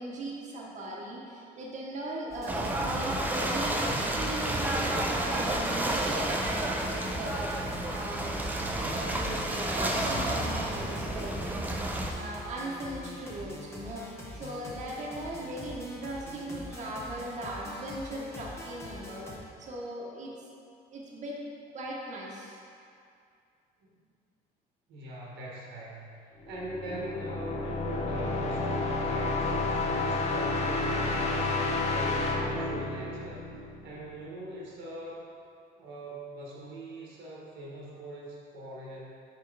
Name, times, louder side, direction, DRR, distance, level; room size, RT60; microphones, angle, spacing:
voice 1, 0.0-8.4 8.6-11.7 12.1-20.3 20.9-21.4 21.7-22.6, right 1 dB, 45° right, -4 dB, 1.0 m, -38 dB
sound 1, 2.3-19.4, left 1 dB, 15° left, 0.9 m, -44 dB
Ocean / Boat Water vehicle, 2.5-12.1, right 1 dB, 10° right, 0.5 m, -30 dB
voice 2, 24.9-31.5 31.9-33.6 33.8-35.3 35.8-39.0, right 1 dB, 90° right, -4 dB, 1.4 m, -42 dB
sound 2, 26.4-34.1, left 2 dB, 40° left, 0.8 m, -30 dB
5.1 x 4.5 x 4.7 m, 2.4 s
cardioid pair, 110°, 17 cm